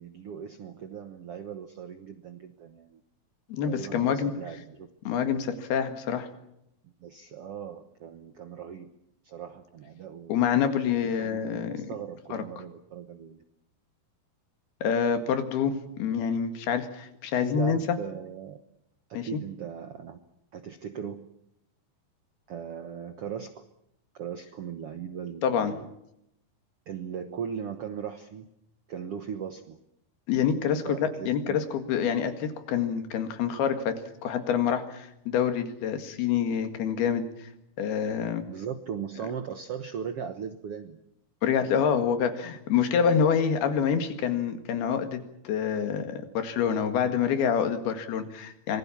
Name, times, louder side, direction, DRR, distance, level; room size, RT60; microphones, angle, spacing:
voice 1, 0.0-3.0 3.7-4.9 5.2-5.3 6.8-8.9 9.2-10.5 11.0-13.4 17.3-18.6 19.1-20.2 20.5-21.3 22.5-23.6 24.2-25.9 26.9-28.5 28.9-29.8 30.8-31.6 38.5-41.0, right 7 dB, 75° right, 8 dB, 1.3 m, -38 dB
voice 2, 3.5-4.3 5.1-6.3 10.3-11.9 12.3-12.4 14.8-18.0 19.2-19.4 25.4-25.7 30.3-34.0 34.2-37.5 37.8-38.4 41.4-48.8, left 7 dB, 85° left, 8 dB, 3.9 m, -27 dB
26.0 x 20.0 x 7.2 m, 0.81 s
omnidirectional pair, 4.4 m